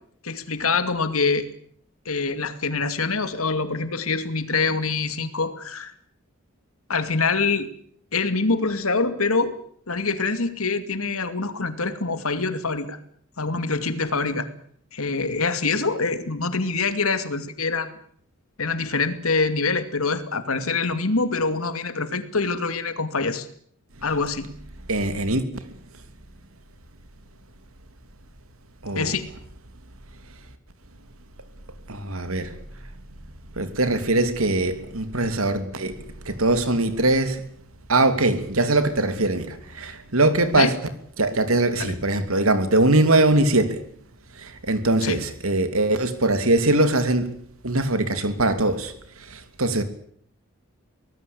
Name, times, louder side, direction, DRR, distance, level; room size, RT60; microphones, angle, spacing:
voice 1, 0.2-1.5 2.1-5.9 6.9-7.7 8.1-9.5 9.9-13.0 13.4-14.5 14.9-18.0 18.6-23.5 24.0-24.5 28.9-29.3 40.6-40.7 41.8-41.9 45.0-45.2, left 4 dB, 85° left, 2.4 m, -25 dB
voice 2, 24.9-25.4 28.8-29.1 31.9-32.5 33.6-37.4 37.9-40.7 41.2-43.8 44.4-47.4 47.6-48.9 49.2-49.8, right 2 dB, 85° right, 2.9 m, -22 dB
24.0 x 19.0 x 8.5 m
head